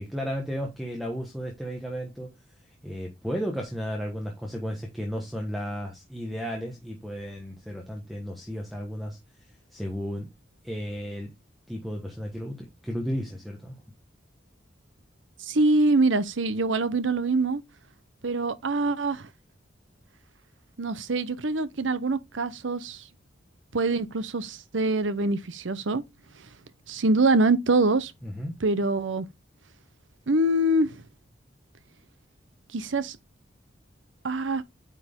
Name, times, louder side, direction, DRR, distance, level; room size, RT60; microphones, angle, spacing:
voice 1, 0.0-2.3 2.8-9.2 9.7-10.3 10.6-11.3 11.7-13.8 28.2-28.5, equal, ahead, 1.3 m, -33 dB
voice 2, 15.4-17.6 18.2-19.3 20.8-23.0 23.7-26.0 26.9-28.1 28.6-29.3 30.3-31.0 32.7-33.2 34.2-34.6, right 2 dB, 85° right, 0.8 m, -24 dB
9.1 x 4.5 x 3.6 m
head